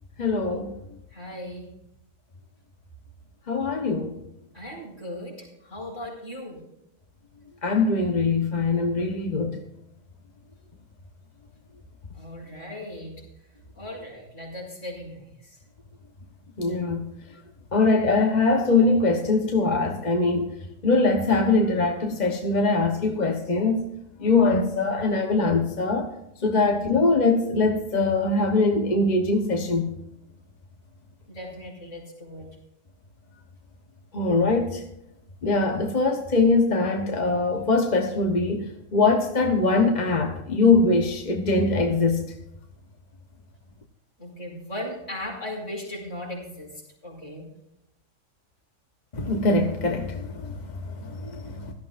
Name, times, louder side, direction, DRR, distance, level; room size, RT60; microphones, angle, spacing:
voice 1, 0.2-0.7 3.5-4.1 7.6-9.5 16.6-17.0 17.7-20.5 20.8-23.9 24.2-26.1 26.4-29.9 34.1-34.8 35.4-42.2 49.1-50.6 51.0-51.7, left 3 dB, 35° left, 3 dB, 1.1 m, -22 dB
voice 2, 1.1-1.7 4.5-6.6 12.1-13.2 13.8-15.6 26.5-26.8 31.3-32.5 44.2-47.5, left 1 dB, 60° left, -2 dB, 5.5 m, -37 dB
17.0 x 13.0 x 2.5 m, 0.82 s
omnidirectional pair, 1.4 m